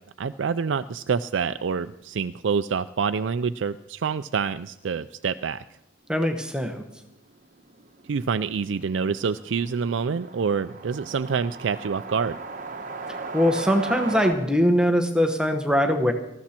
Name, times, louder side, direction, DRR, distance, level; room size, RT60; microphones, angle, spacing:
voice 1, 0.2-5.6 8.1-12.4, right 6 dB, 80° right, 11 dB, 0.4 m, -27 dB
voice 2, 6.1-6.8 13.1-16.1, equal, 5° right, 6 dB, 1.1 m, -22 dB
sound 1, 6.9-7.0 7.2-7.3 7.6-14.3, right 4 dB, 45° right, 1.2 m, -37 dB
19.0 x 14.5 x 4.4 m, 0.86 s
head